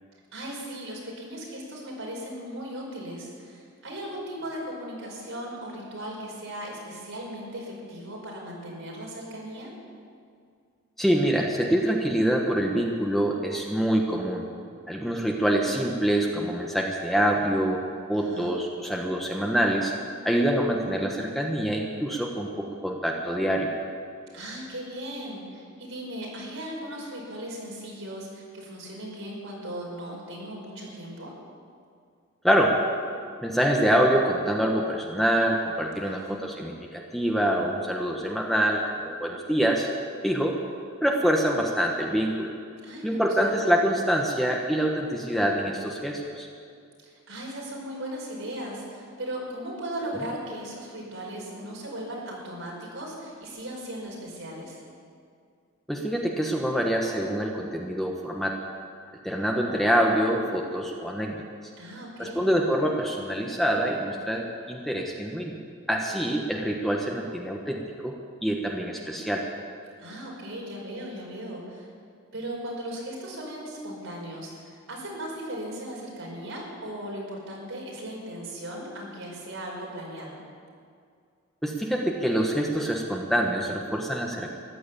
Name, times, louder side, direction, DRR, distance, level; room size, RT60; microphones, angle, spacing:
voice 1, 0.3-9.7 18.1-18.5 24.3-31.3 36.0-36.4 42.8-43.6 47.0-54.8 61.8-62.5 70.0-71.9 72.3-80.4, right 1 dB, 75° right, -3 dB, 5.3 m, -37 dB
voice 2, 11.0-14.4 14.9-19.9 20.2-23.7 32.4-32.8 33.4-39.9 40.2-40.6 41.0-42.5 43.0-46.5 55.9-58.6 59.2-61.4 62.2-65.6 65.9-68.1 68.4-69.4 81.6-84.5, equal, ahead, 0 dB, 1.2 m, -25 dB
14.5 x 11.5 x 8.4 m, 2.2 s
head